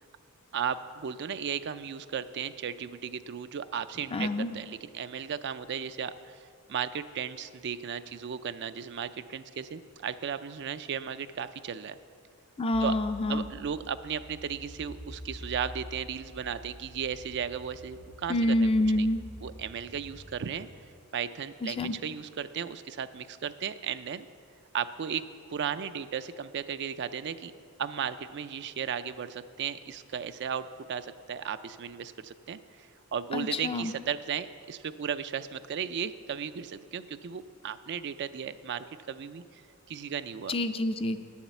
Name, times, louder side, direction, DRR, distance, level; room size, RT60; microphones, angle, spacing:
voice 1, 0.5-4.3 4.5-12.0 12.8-12.9 13.3-18.6 19.0-19.1 19.4-20.7 21.1-24.3 24.7-25.2 25.5-27.5 27.8-39.6 39.9-40.5, right 7 dB, 50° right, 12 dB, 0.4 m, -35 dB
voice 2, 4.1-4.5 12.6-13.5 18.3-19.2 21.6-22.0 33.3-33.9 40.5-41.2, left 1 dB, 25° left, 9 dB, 0.4 m, -27 dB
sound 1, 12.7-20.6, equal, 85° left, 3.5 m, -47 dB
10.5 x 7.2 x 8.0 m, 2.3 s
head